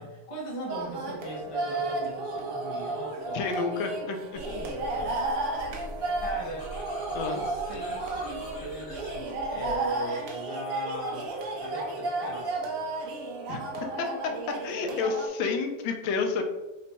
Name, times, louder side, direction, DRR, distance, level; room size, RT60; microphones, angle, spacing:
voice 1, 0.0-3.5 4.4-5.2 6.1-6.7 7.2-12.8, right 1 dB, 55° left, -2 dB, 0.3 m, -38 dB
sound 1, 0.7-15.3, right 2 dB, 70° right, 0.8 m, -33 dB
voice 2, 3.3-4.4 7.1-7.4 13.5-13.6 14.6-16.4, left 4 dB, 80° left, 4 dB, 1.3 m, -29 dB
sound 2, 4.3-9.8, equal, 40° left, 1.1 m, -43 dB
4.0 x 2.2 x 4.0 m, 1.1 s
omnidirectional pair, 2.1 m